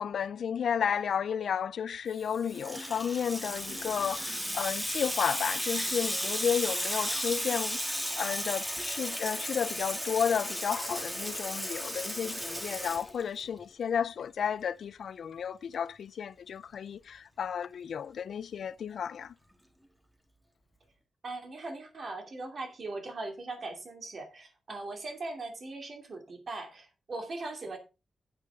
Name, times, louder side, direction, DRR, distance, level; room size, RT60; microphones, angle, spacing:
voice 1, 0.0-19.3, left 7 dB, 65° left, 0.4 m, -32 dB
Water tap faucet / Sink (filling or washing), 2.2-13.6, equal, 5° right, 1.5 m, -34 dB
voice 2, 21.2-27.8, right 2 dB, 40° right, 2.7 m, -40 dB
9.5 x 9.0 x 3.5 m
wide cardioid pair, 175°, 0 cm